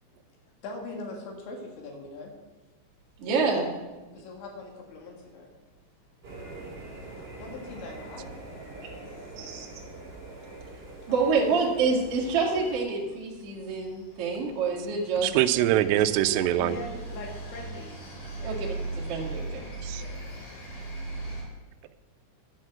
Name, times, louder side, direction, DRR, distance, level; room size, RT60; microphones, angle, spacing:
voice 1, 0.6-2.3 4.1-5.5 7.0-9.7 11.1-11.3 16.6-17.9 18.3-18.6 19.9-20.4, left 2 dB, 75° left, 1 dB, 4.0 m, -42 dB
sound 1, 3.0-3.9 4.1-4.2 4.6-4.7 4.9-5.2 6.0-6.3 6.7-7.2 7.6-7.7 8.1-21.4, right 2 dB, 45° left, 4.2 m, -40 dB
voice 2, 3.2-3.7 9.4-9.7 11.1-15.3 16.3-16.4 18.4-18.7 18.9-19.6, right 4 dB, 55° right, -2 dB, 1.6 m, -27 dB
sound 2, 6.2-12.8, right 2 dB, 25° right, 2.5 m, -44 dB
voice 3, 15.2-16.8 19.8-20.0, right 13 dB, 85° right, 10 dB, 2.5 m, -23 dB
11.5 x 6.5 x 7.6 m, 1.2 s
omnidirectional pair, 5.5 m